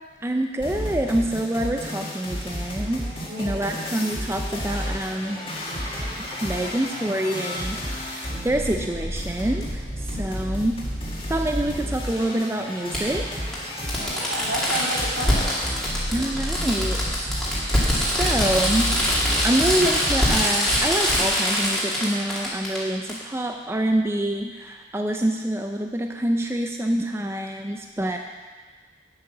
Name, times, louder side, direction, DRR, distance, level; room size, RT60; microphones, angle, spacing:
voice 1, 0.2-5.4 6.4-7.8 8.1-9.8 10.1-10.8 11.3-13.6 16.1-17.2 17.5-17.6 18.0-18.9 19.4-28.2, right 1 dB, 15° right, 4 dB, 0.4 m, -26 dB
sound 1, 0.6-20.4, equal, 25° left, 1.9 m, -31 dB
voice 2, 3.3-3.9 10.1-10.2 13.9-15.5, right 1 dB, 80° right, -4 dB, 2.9 m, -31 dB
Fireworks, 9.6-9.7 11.2-11.3 12.9-13.0 13.5-13.6 13.9-22.8 23.1-23.2, equal, 5° left, 2.3 m, -23 dB
9.4 x 8.2 x 6.0 m, 1.4 s
head